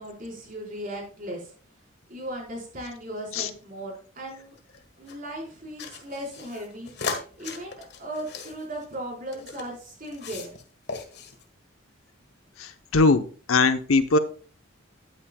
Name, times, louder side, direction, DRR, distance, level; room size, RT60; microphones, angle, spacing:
voice 1, 0.0-1.5 2.1-4.5 5.0-6.9 7.4-10.5, right 1 dB, 40° right, -1 dB, 4.5 m, -37 dB
sound 1, 4.2-5.2 5.8-9.7 10.0-10.6 10.9-11.4, left 4 dB, 55° left, 1.6 m, -37 dB
voice 2, 12.6-14.2, left 3 dB, 85° left, 9 dB, 0.9 m, -21 dB
13.5 x 8.9 x 2.3 m, 0.41 s
head